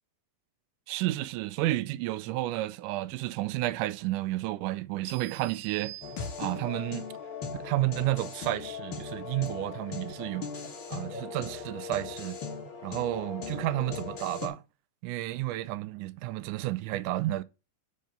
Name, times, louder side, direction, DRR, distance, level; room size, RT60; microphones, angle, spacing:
voice 1, 0.9-5.9 6.4-7.1 7.5-10.5 10.9-12.4 12.8-14.6 15.0-17.4, right 16 dB, 90° right, 2.1 m, -31 dB
sound 1, 5.1-6.8, right 11 dB, 70° right, 2.1 m, -46 dB
sound 2, 6.0-14.5, left 5 dB, 50° left, 1.8 m, -39 dB
6.6 x 5.5 x 5.1 m
omnidirectional pair, 3.5 m